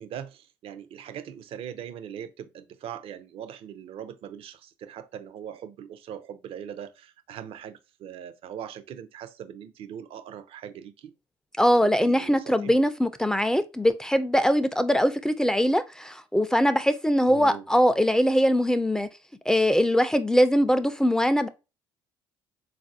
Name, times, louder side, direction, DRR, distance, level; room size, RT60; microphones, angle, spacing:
voice 1, 0.0-11.1 11.8-12.7 17.3-17.6, right 9 dB, 60° right, 0.5 m, -41 dB
voice 2, 11.6-19.1 19.5-21.5, equal, 5° left, 0.4 m, -22 dB
3.9 x 2.5 x 2.6 m
supercardioid pair, 70°, 11 cm